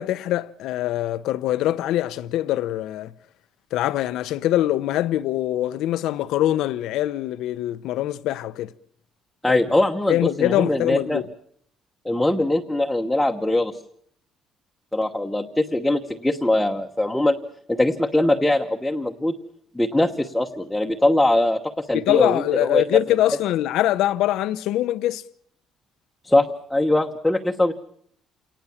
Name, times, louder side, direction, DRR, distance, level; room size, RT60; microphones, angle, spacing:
voice 1, 0.0-3.1 3.7-8.7 9.5-9.6 10.1-11.2 21.9-25.2, left 13 dB, 80° left, 0.9 m, -23 dB
voice 2, 9.4-11.2 12.0-13.8 14.9-17.4 17.7-19.3 19.7-22.8 26.2-27.7, left 1 dB, 5° left, 1.1 m, -22 dB
29.0 x 19.0 x 7.3 m
cardioid pair, 155°, 0 cm